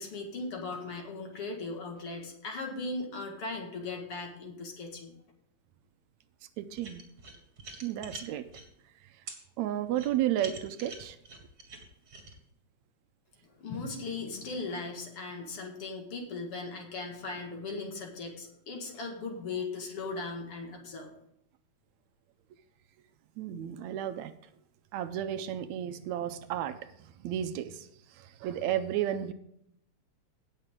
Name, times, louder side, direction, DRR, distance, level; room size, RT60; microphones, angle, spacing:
voice 1, 0.0-5.2 13.6-21.1, left 3 dB, 55° left, 1 dB, 2.6 m, -38 dB
voice 2, 6.6-7.0 7.8-8.5 9.0-9.1 9.6-11.2 23.4-24.3 24.9-29.3, right 11 dB, 80° right, 10 dB, 1.9 m, -33 dB
sound 1, 6.8-8.7 9.3-9.4 9.9-12.3, right 3 dB, 35° right, 2.2 m, -45 dB
17.5 x 6.6 x 3.7 m, 0.75 s
omnidirectional pair, 3.4 m